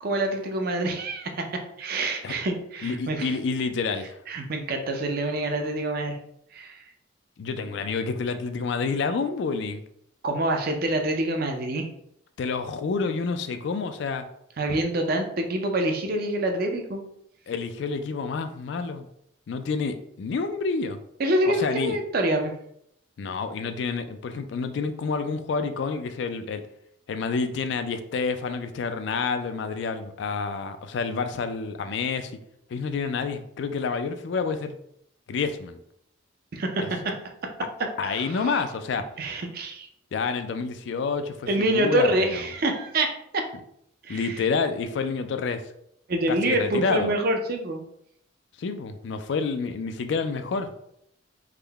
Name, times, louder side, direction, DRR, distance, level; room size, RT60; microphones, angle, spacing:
voice 1, 0.0-3.3 4.3-6.2 6.5-6.8 10.2-11.9 14.6-17.0 21.2-22.5 36.5-37.1 37.4-37.5 37.8-38.5 39.2-39.9 41.5-43.5 44.0-44.4 46.1-47.8, right 1 dB, 50° right, 4 dB, 0.5 m, -26 dB
voice 2, 2.8-4.2 7.4-9.8 12.4-14.2 17.5-19.1 19.5-21.0 21.5-22.0 23.2-26.6 27.1-32.3 32.7-34.8 35.3-35.8 36.8-36.9 38.0-39.0 40.1-42.4 44.1-45.6 46.3-47.1 48.6-50.7, left 4 dB, 60° left, 9 dB, 0.3 m, -28 dB
3.6 x 2.1 x 3.3 m, 0.73 s
head